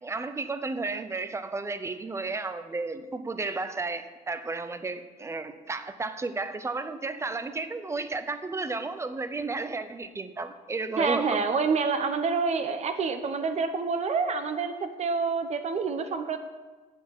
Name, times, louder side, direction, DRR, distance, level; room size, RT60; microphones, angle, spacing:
voice 1, 0.0-11.4, right 3 dB, 15° right, 10 dB, 0.7 m, -33 dB
voice 2, 11.0-16.4, right 5 dB, 40° right, 8 dB, 0.9 m, -27 dB
8.6 x 8.1 x 7.4 m, 1.3 s
cardioid pair, 140°, 17 cm